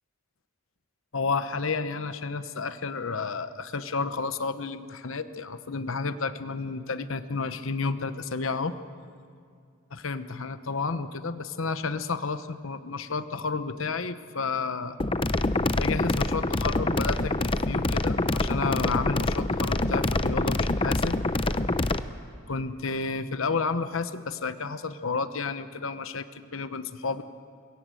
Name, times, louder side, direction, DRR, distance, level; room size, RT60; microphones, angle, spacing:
voice 1, 1.1-8.7 9.9-15.0 15.8-21.2 22.5-27.2, left 4 dB, 70° left, 11 dB, 1.0 m, -31 dB
sound 1, 15.0-22.0, left 2 dB, 25° left, 0.6 m, -26 dB
25.5 x 22.5 x 7.7 m, 2.3 s
head